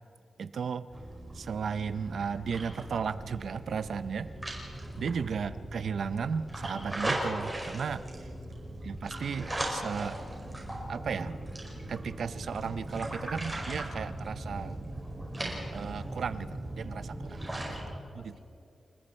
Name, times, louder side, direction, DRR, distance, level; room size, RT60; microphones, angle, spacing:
voice 1, 0.4-0.9 1.3-4.3 5.0-8.3 8.8-10.2 10.9-11.5 11.9-14.8 15.7-17.3 17.7-17.8 18.2-18.4, right 6 dB, 75° right, 13 dB, 0.7 m, -35 dB
sound 1, 0.9-17.8, right 1 dB, 15° right, 5.0 m, -38 dB
voice 2, 4.8-5.1 8.1-8.5 17.2-18.4, left 1 dB, 55° left, 2 dB, 3.9 m, -57 dB
30.0 x 19.5 x 4.4 m, 2.5 s
wide cardioid pair, 140°, 0 cm